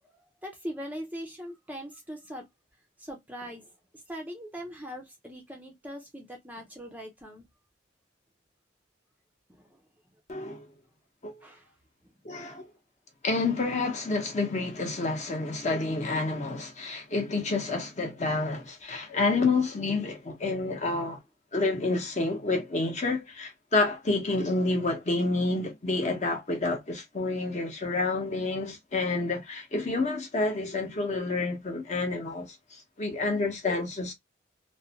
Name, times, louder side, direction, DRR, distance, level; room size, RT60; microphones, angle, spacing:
voice 1, 0.1-2.5 3.0-7.4 9.5-9.8 11.4-11.7 12.4-12.6, equal, 10° right, 0.5 m, -41 dB
voice 2, 10.3-10.7 11.2-11.4 12.2-12.7 13.2-21.2 21.5-34.1, left 3 dB, 35° left, 0.8 m, -29 dB
2.5 x 2.1 x 2.7 m
head